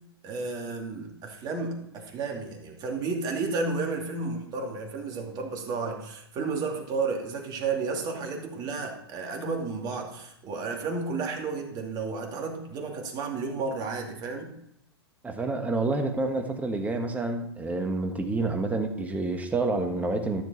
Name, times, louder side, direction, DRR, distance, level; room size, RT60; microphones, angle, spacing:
voice 1, 0.2-14.5, right 4 dB, 30° right, 1 dB, 2.6 m, -32 dB
voice 2, 15.2-20.4, right 2 dB, 10° right, 5 dB, 1.4 m, -28 dB
13.5 x 7.2 x 4.2 m, 0.77 s
hypercardioid pair, 115°, 14 cm